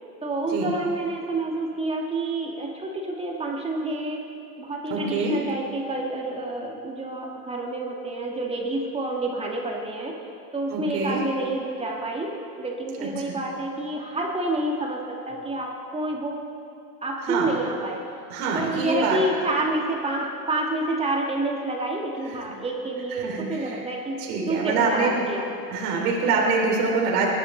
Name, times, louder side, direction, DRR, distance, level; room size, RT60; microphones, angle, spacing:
voice 1, 0.2-4.2 4.6-10.1 10.5-12.3 12.6-15.0 15.3-16.4 17.0-18.0 18.5-24.2 24.4-25.5, right 2 dB, 10° right, 0 dB, 1.7 m, -28 dB
voice 2, 4.9-5.3 10.7-11.2 13.0-13.4 17.2-17.5 18.3-19.2 22.3-22.4 23.1-23.8 24.2-25.2 25.7-27.3, right 4 dB, 65° right, -2 dB, 3.0 m, -25 dB
21.0 x 11.0 x 3.2 m, 2.6 s
hypercardioid pair, 115°, 49 cm